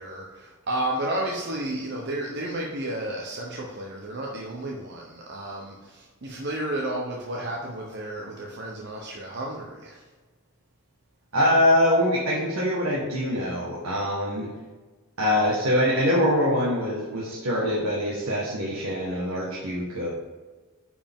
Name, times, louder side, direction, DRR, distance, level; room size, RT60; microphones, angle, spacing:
voice 1, 0.0-10.0, right 1 dB, 55° right, -2 dB, 1.0 m, -32 dB
voice 2, 11.3-14.5 15.2-20.1, left 1 dB, 85° right, -5 dB, 1.6 m, -24 dB
10.0 x 5.0 x 3.7 m, 1.3 s
head